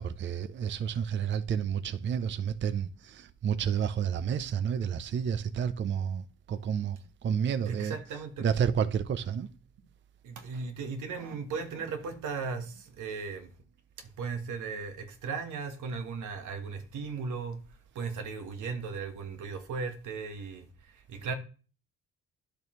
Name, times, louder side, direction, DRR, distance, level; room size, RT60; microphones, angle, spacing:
voice 1, 0.0-8.0 8.4-9.5, right 8 dB, 40° right, 0.5 m, -30 dB
voice 2, 7.6-8.5 10.2-13.5 14.0-17.6 17.9-21.3, right 5 dB, 75° right, 1.4 m, -37 dB
10.5 x 6.7 x 3.1 m
cardioid pair, 90°, 30 cm